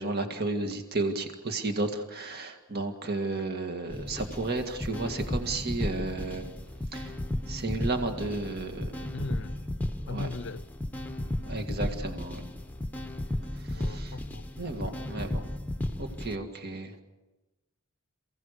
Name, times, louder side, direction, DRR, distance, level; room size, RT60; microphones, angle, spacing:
voice 1, 0.0-6.4 6.9-7.1 7.5-9.1 10.1-10.3 11.4-12.4 13.5-14.2 14.6-15.4 16.0-16.9, right 2 dB, 45° right, 1.9 m, -33 dB
sound 1, 3.9-16.3, left 1 dB, 10° left, 0.9 m, -34 dB
voice 2, 9.1-9.6 10.1-10.6 13.7-15.0 15.4-15.5, left 3 dB, 60° left, 0.6 m, -39 dB
28.0 x 16.5 x 6.7 m
head